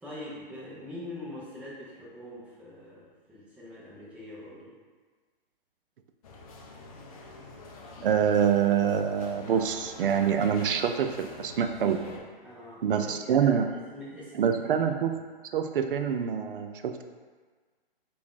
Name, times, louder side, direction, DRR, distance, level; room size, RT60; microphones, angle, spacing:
voice 1, 0.0-4.7 12.4-15.2, left 1 dB, 5° right, -8 dB, 0.6 m, -44 dB
sound 1, 6.2-12.2, left 2 dB, 40° left, 0.5 m, -45 dB
voice 2, 8.0-12.1 12.8-13.7 14.4-15.1 15.5-17.0, right 8 dB, 65° right, 7 dB, 0.4 m, -26 dB
3.4 x 2.5 x 3.7 m, 1.4 s
hypercardioid pair, 135°, 29 cm